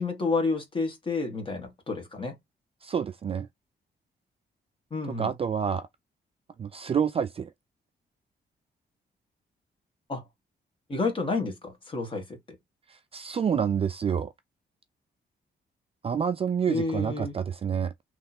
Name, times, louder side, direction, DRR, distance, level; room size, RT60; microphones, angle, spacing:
voice 1, 0.0-2.3 4.9-5.3 10.1-10.2 10.9-12.2 16.7-17.3, left 3 dB, 30° left, 1.9 m, -30 dB
voice 2, 2.8-3.5 5.1-5.9 6.6-7.5 12.9-14.3 16.0-17.9, right 7 dB, 35° right, 0.4 m, -28 dB
3.4 x 3.2 x 4.3 m
wide cardioid pair, 150°, 18 cm